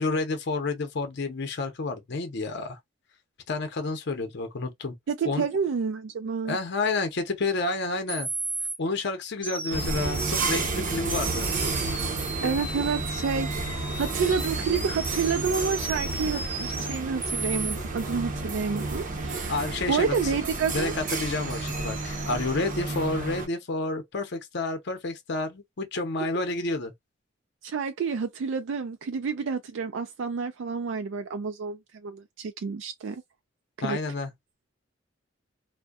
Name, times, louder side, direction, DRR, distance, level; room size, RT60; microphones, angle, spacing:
voice 1, 0.0-2.8 3.5-5.0 5.2-5.4 6.5-8.3 8.8-11.5 19.5-20.4 20.7-26.9 33.8-34.3, left 3 dB, 60° left, 0.6 m, -30 dB
voice 2, 5.1-6.6 12.4-19.6 19.9-20.9 27.6-33.2 33.8-34.0, right 5 dB, 70° right, 0.4 m, -29 dB
sound 1, 7.7-7.8 8.1-8.8 9.4-10.7 11.1-17.8, right 3 dB, 10° right, 0.5 m, -35 dB
sound 2, 9.7-23.5, right 3 dB, 45° right, 0.7 m, -31 dB
2.6 x 2.1 x 2.3 m
head